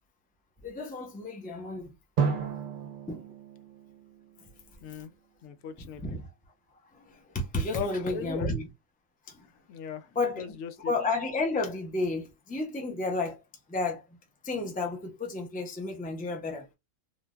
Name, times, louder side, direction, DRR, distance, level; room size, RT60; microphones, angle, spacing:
voice 1, 0.6-1.9 3.1-3.2 5.8-6.3 6.9-8.7 9.3-9.5 10.1-13.4 13.7-14.0 14.4-16.7, left 2 dB, 10° left, 0.5 m, -32 dB
Drum, 2.2-5.1, right 6 dB, 50° right, 0.7 m, -33 dB
voice 2, 4.8-5.1 5.4-6.2 7.7-8.5 9.7-10.1 10.3-10.9, left 8 dB, 90° left, 1.0 m, -38 dB
3.2 x 2.5 x 2.3 m
omnidirectional pair, 1.3 m